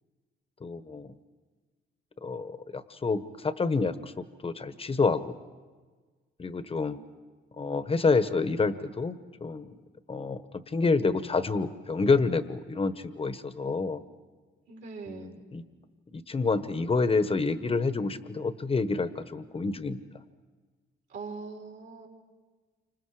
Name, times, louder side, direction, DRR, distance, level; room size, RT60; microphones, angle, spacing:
voice 1, 0.6-1.1 2.2-5.3 6.4-7.0 7.6-9.2 9.4-9.7 10.1-10.4 10.7-14.0 15.1-15.6 16.1-20.0, left 4 dB, 30° left, 12 dB, 1.2 m, -28 dB
voice 2, 14.7-15.4 21.1-22.1, right 4 dB, 65° right, -1 dB, 4.4 m, -41 dB
29.0 x 26.5 x 5.0 m, 1.4 s
cardioid pair, 90°, 20 cm